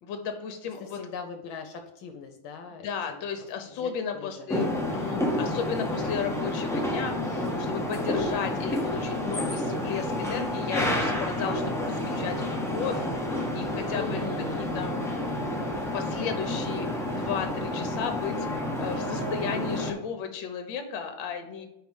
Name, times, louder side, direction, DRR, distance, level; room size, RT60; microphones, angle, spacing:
voice 1, 0.0-1.0 2.7-13.1 13.5-14.2 14.6-15.0 15.9-21.7, left 7 dB, 70° left, 7 dB, 1.6 m, -34 dB
voice 2, 0.8-4.5 13.9-14.6, left 5 dB, 85° left, 5 dB, 1.5 m, -40 dB
sound 1, 4.5-19.9, left 1 dB, 5° left, 0.3 m, -29 dB
4.9 x 4.6 x 5.3 m, 0.85 s
omnidirectional pair, 2.2 m